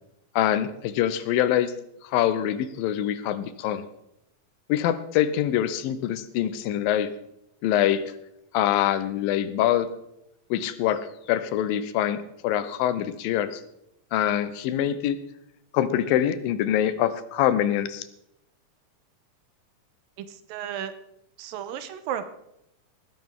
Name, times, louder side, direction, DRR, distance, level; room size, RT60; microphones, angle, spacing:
voice 1, 0.4-1.7 2.0-3.9 4.7-7.1 7.6-8.0 8.5-9.9 10.5-13.6 14.1-15.2 15.7-18.1, left 11 dB, 85° left, 13 dB, 2.6 m, -24 dB
voice 2, 20.2-21.0 21.4-22.3, right 9 dB, 85° right, 11 dB, 2.6 m, -34 dB
18.5 x 10.5 x 3.7 m, 0.81 s
omnidirectional pair, 4.0 m